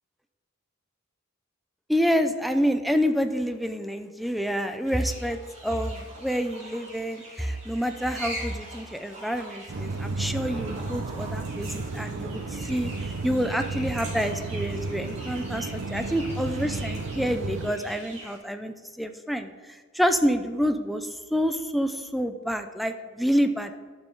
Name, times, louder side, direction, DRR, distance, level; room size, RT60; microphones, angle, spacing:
voice 1, 1.9-12.9 13.2-19.5 19.9-23.8, equal, ahead, 7 dB, 0.5 m, -28 dB
sound 1, 4.9-18.4, right 1 dB, 35° right, 2.7 m, -43 dB
sound 2, 9.7-17.7, right 3 dB, 75° right, 0.6 m, -33 dB
12.5 x 6.0 x 3.8 m, 1.5 s
head